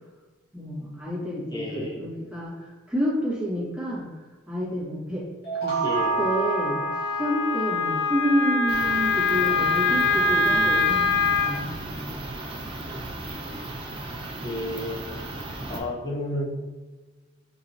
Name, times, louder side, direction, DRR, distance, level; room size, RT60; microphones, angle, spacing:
voice 1, 0.5-4.1 4.5-5.2 5.5-6.9 7.2-12.3, equal, 5° right, -8 dB, 1.1 m, -29 dB
voice 2, 1.5-2.0 5.8-6.1 14.4-15.1 15.7-16.5, left 1 dB, 20° left, -2 dB, 0.6 m, -31 dB
sound 1, 5.4-8.2, right 5 dB, 50° left, 0.9 m, -29 dB
Wind instrument woodwind instrument, 5.9-11.6, left 4 dB, 70° left, 0.3 m, -24 dB
sound 2, 8.7-15.8, right 2 dB, 25° right, 0.5 m, -36 dB
4.5 x 2.8 x 2.6 m, 1.2 s
head